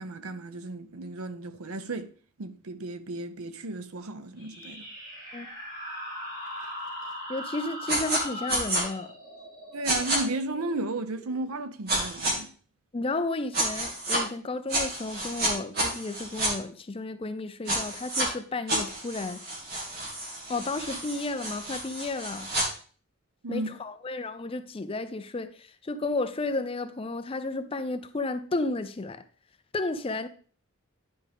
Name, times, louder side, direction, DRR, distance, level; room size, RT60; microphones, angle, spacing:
voice 1, 0.0-2.1 2.4-4.9 9.7-12.5 23.4-23.7, right 2 dB, 85° right, 0.7 m, -34 dB
sound 1, 4.4-11.6, equal, 20° right, 2.7 m, -40 dB
voice 2, 7.3-9.1 12.9-19.4 20.5-22.5 23.5-29.2 29.7-30.3, left 2 dB, 25° left, 0.4 m, -32 dB
sound 2, 7.9-8.2 8.5-8.8 9.8-10.2 11.9-12.3 13.5-14.2 14.7-16.5 17.7-18.3 18.7-22.7, right 1 dB, 45° right, 2.2 m, -29 dB
10.5 x 5.2 x 3.5 m
head